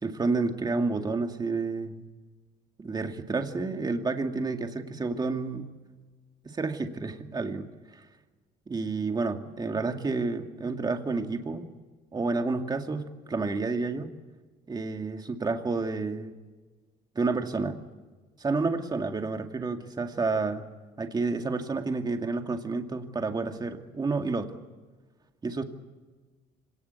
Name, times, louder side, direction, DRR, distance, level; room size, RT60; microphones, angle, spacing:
voice 1, 0.0-2.0 2.8-5.7 6.4-8.0 8.7-11.7 12.1-14.1 14.7-16.3 17.1-17.8 18.4-20.6 21.0-24.5 25.4-25.6, right 3 dB, 25° right, 5 dB, 2.3 m, -30 dB
25.5 x 18.5 x 8.3 m, 1.4 s
cardioid pair, 110°, 17 cm